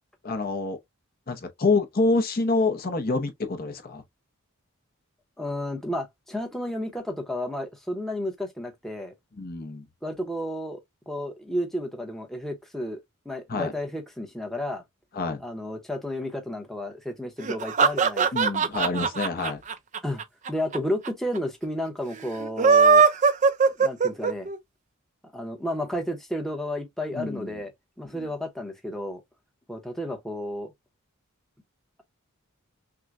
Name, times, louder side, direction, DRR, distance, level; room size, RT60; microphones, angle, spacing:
voice 1, 0.2-0.8 1.3-4.0 9.4-9.8 13.5-13.7 15.1-15.4 18.3-19.6 27.1-27.5 28.0-28.3, left 3 dB, 40° left, 0.7 m, -27 dB
voice 2, 5.4-9.1 10.0-10.8 11.1-13.0 13.3-14.8 15.4-18.5 20.0-20.2 20.5-23.1 23.8-24.5 25.3-27.7 28.0-29.2 29.7-30.7, left 1 dB, ahead, 0.7 m, -32 dB
sound 1, 17.4-20.8 21.0-21.1 21.3-21.4 22.4-24.6, right 5 dB, 35° right, 0.4 m, -20 dB
6.0 x 2.1 x 2.4 m
head